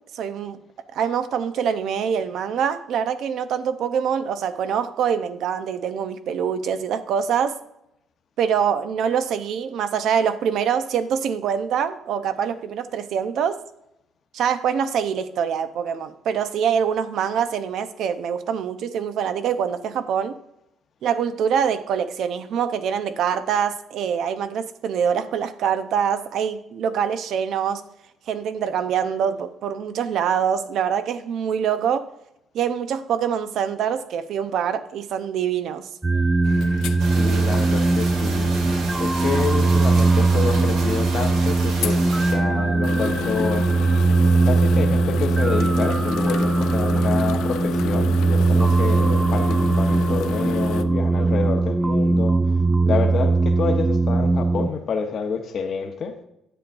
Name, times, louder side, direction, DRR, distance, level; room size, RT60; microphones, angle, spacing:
voice 1, 0.1-0.6 0.9-7.6 8.4-13.6 14.3-20.4 21.0-27.8 28.3-32.1 32.5-35.9, right 7 dB, 70° right, 10 dB, 0.7 m, -24 dB
sound 1, 36.0-54.7, right 3 dB, 15° right, 0.3 m, -20 dB
sound 2, 36.4-50.8, left 12 dB, 80° left, 0.4 m, -34 dB
voice 2, 37.0-38.5 39.0-43.7 44.4-52.4 52.9-56.2, left 6 dB, 50° left, 3 dB, 0.9 m, -28 dB
sound 3, 37.0-42.3, right 2 dB, 90° right, 2.7 m, -32 dB
9.9 x 7.9 x 2.6 m, 0.83 s
cardioid pair, 105°, 0 cm